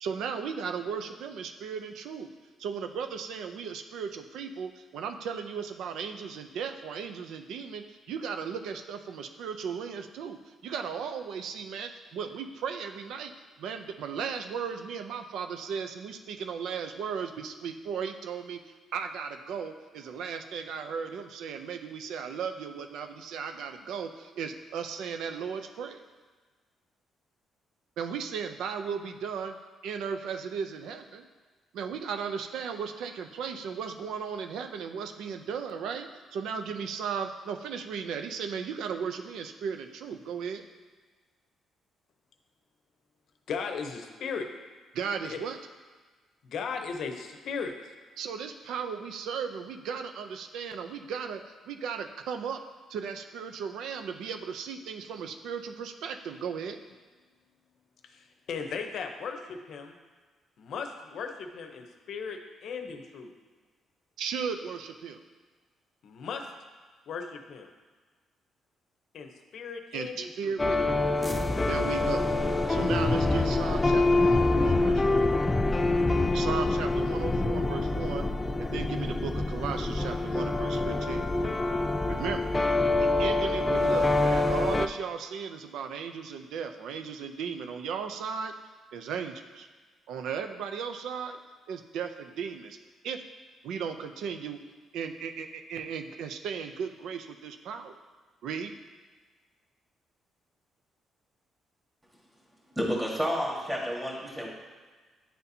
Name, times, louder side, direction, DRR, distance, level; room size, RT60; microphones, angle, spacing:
voice 1, 0.0-2.3 2.6-13.3 13.6-26.0 28.0-29.6 29.8-31.2 31.7-40.6 44.9-45.6 48.2-52.6 52.9-56.8 64.2-65.2 69.9-70.8 71.7-72.3 72.7-75.3 76.3-78.3 78.6-81.2 82.1-82.5 82.9-88.5 88.9-89.7 90.1-91.4 91.7-92.8 93.0-93.2 93.6-94.6 94.9-98.0 98.4-98.7, right 6 dB, 80° right, 7 dB, 0.4 m, -36 dB
voice 2, 43.5-44.5 45.2-45.4 46.4-48.0 58.0-60.0 60.6-63.3 66.0-66.5 67.1-67.7 69.1-70.6, left 5 dB, 70° left, 5 dB, 0.7 m, -37 dB
sound 1, 70.6-84.9, left 2 dB, 20° left, 0.3 m, -26 dB
voice 3, 102.8-104.5, equal, 10° right, -3 dB, 1.6 m, -30 dB
9.9 x 4.1 x 2.7 m, 1.4 s
cardioid pair, 90°, 0 cm